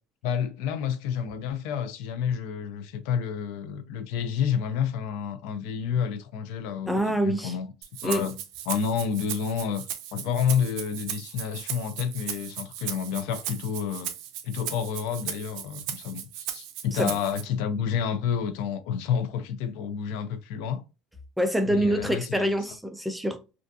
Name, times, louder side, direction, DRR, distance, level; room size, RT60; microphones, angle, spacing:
voice 1, 0.2-7.7 8.0-8.4 8.7-14.1 14.4-20.8 21.7-22.5, left 7 dB, 75° left, 0.4 m, -29 dB
voice 2, 6.9-7.5 8.0-8.2 16.9-17.1 21.4-23.4, equal, 5° right, 0.3 m, -25 dB
Rattle (instrument), 7.8-17.4, right 10 dB, 65° right, 0.4 m, -37 dB
2.5 x 2.4 x 2.2 m
cardioid pair, 160°, 0 cm